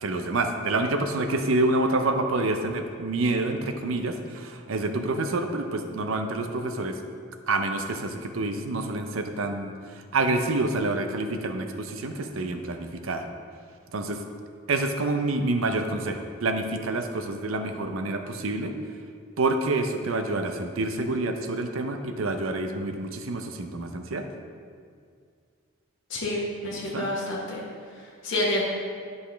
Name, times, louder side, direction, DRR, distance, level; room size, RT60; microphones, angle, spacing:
voice 1, 0.0-7.0 7.5-13.3 13.9-14.2 14.7-18.7 19.4-24.3 26.7-27.1, right 2 dB, 70° right, 6 dB, 0.6 m, -27 dB
voice 2, 26.1-27.6 27.9-28.6, left 1 dB, 60° left, -5 dB, 1.1 m, -29 dB
9.9 x 5.3 x 3.4 m, 2.1 s
head